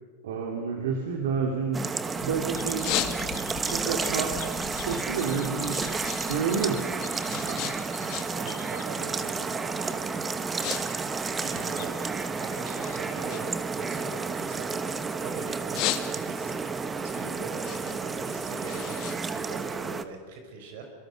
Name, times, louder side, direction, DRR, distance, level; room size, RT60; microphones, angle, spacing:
voice 1, 0.2-1.8 2.2-3.0 3.7-4.3 4.8-5.8 6.2-6.9, right 6 dB, 85° right, 2 dB, 3.1 m, -29 dB
sound 1, 1.1-2.2 2.6-3.6 4.0-6.2 6.5-8.5 8.8-9.2 9.8-10.0 10.3-10.8 11.1-12.3 12.8-15.1 15.5-16.5 16.9-20.1, left 15 dB, 45° left, 1.8 m, -35 dB
sound 2, 1.7-20.0, right 4 dB, 15° right, 1.1 m, -31 dB
Bird vocalization bird call bird song, 2.1-13.6, left 11 dB, 65° left, 2.8 m, -46 dB
voice 2, 7.3-20.9, right 4 dB, 70° right, 4 dB, 5.2 m, -42 dB
26.0 x 23.5 x 6.7 m, 1.5 s
supercardioid pair, 150°, 0 cm